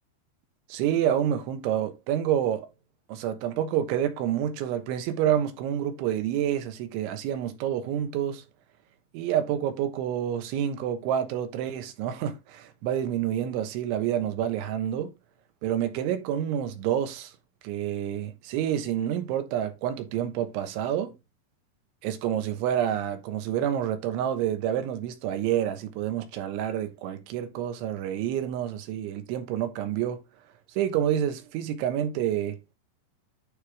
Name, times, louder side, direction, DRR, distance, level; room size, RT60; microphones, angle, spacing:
voice 1, 0.7-2.7 3.1-8.4 9.1-15.1 15.6-17.3 17.6-21.2 22.0-30.2 30.7-32.6, right 10 dB, 85° right, 3.6 m, -28 dB
11.0 x 4.9 x 3.7 m
omnidirectional pair, 5.3 m